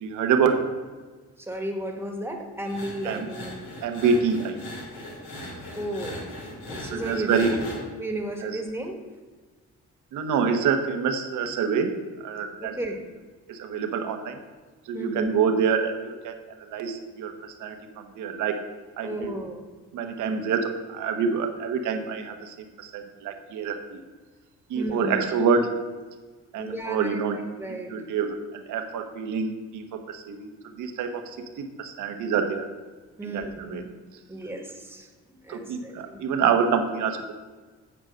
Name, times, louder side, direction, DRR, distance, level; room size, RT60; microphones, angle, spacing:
voice 1, 0.0-0.6 3.0-3.3 3.8-4.6 6.8-7.6 8.4-8.6 10.1-12.0 12.2-12.7 13.5-14.4 14.9-18.6 19.0-19.3 19.9-24.0 24.7-25.7 26.5-27.4 27.7-32.7 33.2-33.8 35.5-37.3, right 6 dB, 80° right, 5 dB, 1.1 m, -27 dB
voice 2, 1.4-3.5 5.7-6.3 6.7-7.6 8.0-9.0 12.6-13.0 14.9-15.3 19.0-19.6 24.7-25.2 26.6-28.0 33.2-33.9 34.3-36.2, right 1 dB, 10° right, 3 dB, 1.5 m, -34 dB
sound 1, 2.6-7.8, left 1 dB, 80° left, 2.7 m, -39 dB
9.0 x 4.8 x 6.3 m, 1.3 s
cardioid pair, 90°, 30 cm